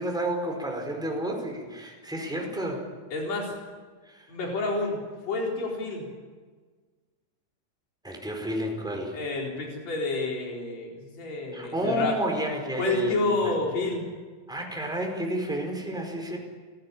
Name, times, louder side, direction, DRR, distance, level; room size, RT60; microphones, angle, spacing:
voice 1, 0.0-2.8 4.0-4.3 8.0-9.2 11.5-13.5 14.5-16.4, equal, ahead, 1 dB, 4.5 m, -30 dB
voice 2, 3.1-3.5 4.3-6.1 9.1-12.1 12.8-14.1, left 3 dB, 50° left, -1 dB, 5.4 m, -29 dB
29.5 x 16.0 x 8.7 m, 1.5 s
omnidirectional pair, 4.0 m